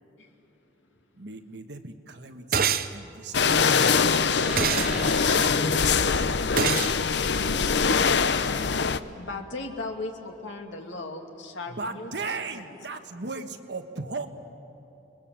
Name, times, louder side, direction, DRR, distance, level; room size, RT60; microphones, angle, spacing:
voice 1, 0.2-1.0 9.2-12.6, left 2 dB, 85° left, 3 dB, 2.5 m, -38 dB
voice 2, 1.1-3.9 4.2-4.8 5.2-6.9 11.7-14.3, right 3 dB, 70° right, 7 dB, 1.4 m, -38 dB
sound 1, 2.5-2.9 4.6-4.9 6.6-6.9, right 7 dB, 50° right, 0.7 m, -24 dB
sound 2, 3.3-9.0, left 5 dB, 70° left, 0.7 m, -23 dB
sound 3, 4.4-9.4, right 1 dB, 5° right, 2.7 m, -40 dB
voice 3, 5.4-6.0 7.3-8.9, left 1 dB, 20° left, 7 dB, 0.9 m, -42 dB
29.5 x 21.5 x 7.7 m, 2.8 s
head